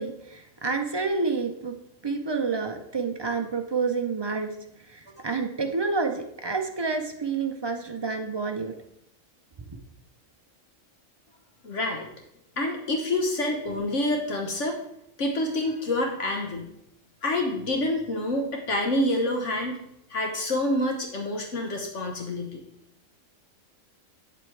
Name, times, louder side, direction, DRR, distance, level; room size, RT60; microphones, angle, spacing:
voice 1, 0.0-1.8 2.0-4.5 4.9-8.7, right 4 dB, 45° right, 4 dB, 0.3 m, -29 dB
voice 2, 11.6-12.1 12.6-14.8 15.2-16.7 17.2-19.8 20.1-22.6, left 1 dB, 65° left, 2 dB, 1.3 m, -27 dB
8.6 x 7.7 x 3.2 m, 0.78 s
omnidirectional pair, 1.4 m